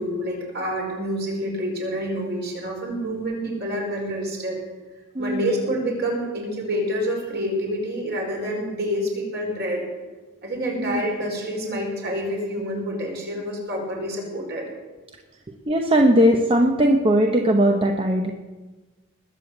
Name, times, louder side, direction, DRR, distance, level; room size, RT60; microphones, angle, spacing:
voice 1, 0.0-4.6 5.2-9.8 10.4-14.7, equal, 50° right, -1 dB, 4.7 m, -27 dB
voice 2, 15.7-18.3, equal, 25° right, 2 dB, 1.0 m, -19 dB
20.5 x 7.1 x 8.0 m, 1.2 s
head